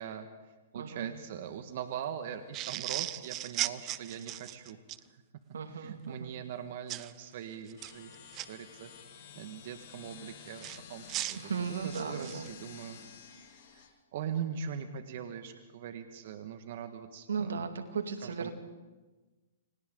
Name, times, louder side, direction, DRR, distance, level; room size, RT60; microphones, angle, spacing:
voice 1, 0.0-4.8 5.1-5.2 5.7-8.1 8.5-13.0 13.2-13.9 14.1-17.6 18.2-18.5, right 8 dB, 55° right, 7 dB, 1.7 m, -41 dB
voice 2, 0.7-1.1 5.5-6.3 11.4-12.5 17.3-18.5, right 6 dB, 80° right, 7 dB, 2.3 m, -36 dB
sound 1, 2.5-5.0 6.9-7.1 7.7-8.5 10.6-12.5, right 15 dB, 30° right, 0.7 m, -37 dB
sound 2, 7.8-13.9, left 7 dB, 55° left, 6.3 m, -51 dB
29.5 x 25.0 x 4.0 m, 1.2 s
hypercardioid pair, 130°, 0 cm